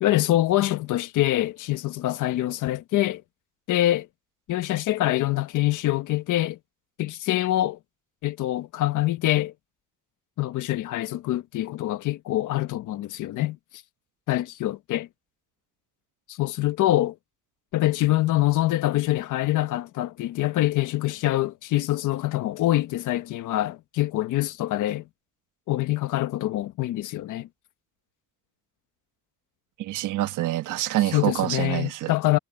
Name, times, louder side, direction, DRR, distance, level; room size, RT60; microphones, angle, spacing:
voice 1, 0.0-3.2 3.7-4.1 4.5-6.6 7.0-7.8 8.2-9.5 10.4-13.6 14.3-15.1 16.3-17.1 17.7-25.0 25.7-27.5 31.1-32.4, left 15 dB, 85° left, 1.5 m, -25 dB
voice 2, 29.8-32.1, right 15 dB, 85° right, 1.3 m, -26 dB
cardioid pair, 90°, 30 cm